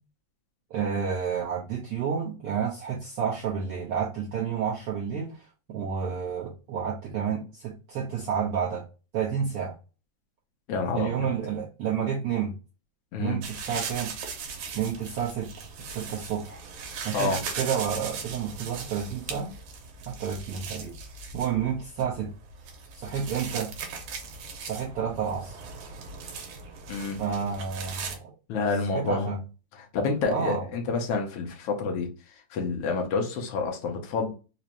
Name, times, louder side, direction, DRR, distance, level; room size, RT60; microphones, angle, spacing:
voice 1, 0.7-8.8 9.1-9.7 10.9-12.5 13.2-14.1 14.7-15.5 15.9-16.6 17.0-19.5 20.1-20.9 21.3-22.3 22.9-23.7 24.6-25.6 27.2-28.2 28.9-29.4 30.3-30.7, right 7 dB, 70° right, -5 dB, 1.5 m, -30 dB
voice 2, 10.7-11.3 13.1-13.4 17.1-17.4 26.9-27.2 28.5-29.4 29.7-32.1 32.5-34.3, left 4 dB, 75° left, 2 dB, 1.4 m, -28 dB
sound 1, 13.4-28.2, right 5 dB, 90° right, 2.2 m, -39 dB
5.0 x 2.2 x 2.9 m, 0.33 s
omnidirectional pair, 3.4 m